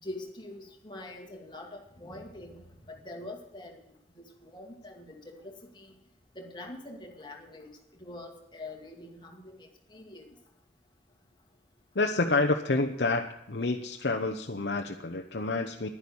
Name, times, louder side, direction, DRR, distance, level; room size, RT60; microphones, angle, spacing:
voice 1, 0.0-3.8 4.2-5.9 6.4-7.7 8.0-10.3, left 1 dB, 25° left, 2 dB, 2.3 m, -44 dB
voice 2, 11.9-15.9, left 3 dB, 70° left, 3 dB, 0.9 m, -28 dB
11.5 x 10.5 x 7.1 m, 0.83 s
head